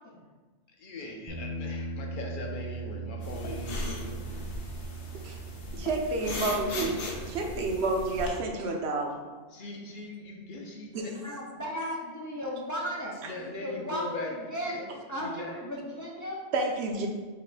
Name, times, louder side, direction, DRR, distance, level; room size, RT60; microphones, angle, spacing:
voice 1, 0.8-4.3 6.6-6.7 7.1-7.5 9.5-11.1 13.2-14.3 14.7-14.8 15.1-15.5 17.0-17.1, left 2 dB, 50° left, 0 dB, 0.8 m, -40 dB
Bass guitar, 1.3-6.0 6.3-7.5, right 4 dB, 35° right, 0.5 m, -39 dB
sound 1, 3.2-8.3, left 2 dB, 75° left, 1.0 m, -37 dB
voice 2, 5.7-7.0 7.3-9.2 10.9-11.4 16.5-17.1, right 2 dB, 70° right, 2 dB, 0.9 m, -30 dB
voice 3, 11.2-16.4, equal, 30° left, -4 dB, 0.3 m, -36 dB
5.0 x 2.1 x 4.7 m, 1.4 s
omnidirectional pair, 1.2 m